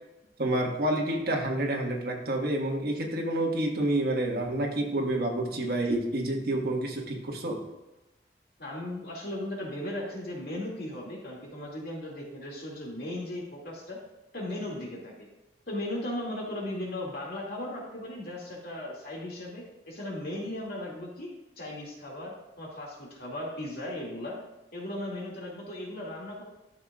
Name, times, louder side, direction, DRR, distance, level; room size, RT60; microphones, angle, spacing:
voice 1, 0.4-7.6, right 1 dB, 60° right, 0 dB, 1.5 m, -28 dB
voice 2, 8.6-14.0 14.3-15.1 15.7-24.4 24.7-26.4, left 1 dB, 60° left, -3 dB, 2.3 m, -37 dB
12.5 x 6.4 x 2.4 m, 1.0 s
head